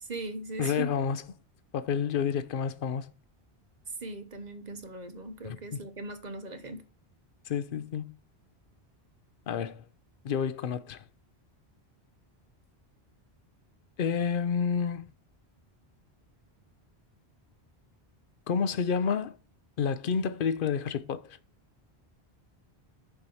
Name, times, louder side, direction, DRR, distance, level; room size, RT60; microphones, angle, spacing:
voice 1, 0.0-0.9 4.0-6.9, right 2 dB, 45° right, 1.0 m, -39 dB
voice 2, 0.6-1.2 1.7-3.1 5.4-5.6 7.5-8.1 9.5-9.8 10.2-11.0 14.0-15.1 18.5-19.4 19.8-21.4, left 7 dB, 60° left, 0.8 m, -29 dB
6.8 x 4.7 x 6.9 m
omnidirectional pair, 1.1 m